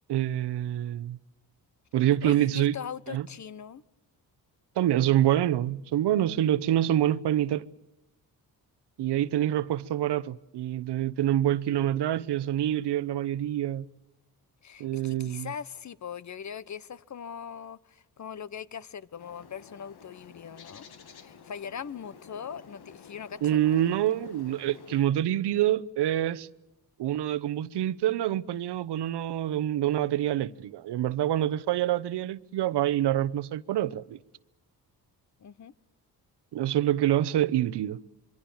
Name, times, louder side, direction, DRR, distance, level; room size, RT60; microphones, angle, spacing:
voice 1, 0.1-1.2 1.9-2.7 3.1-3.3 4.8-7.7 9.0-13.9 14.8-15.5 23.4-26.5 27.0-34.2 36.5-38.0, right 12 dB, 80° right, 0.9 m, -26 dB
voice 2, 2.2-3.8 14.6-20.9 21.1-23.8 35.4-35.7, left 7 dB, 45° left, 1.0 m, -41 dB
Bird, 19.1-25.1, left 6 dB, 70° left, 2.3 m, -51 dB
26.0 x 24.0 x 7.2 m
cardioid pair, 85°, 40 cm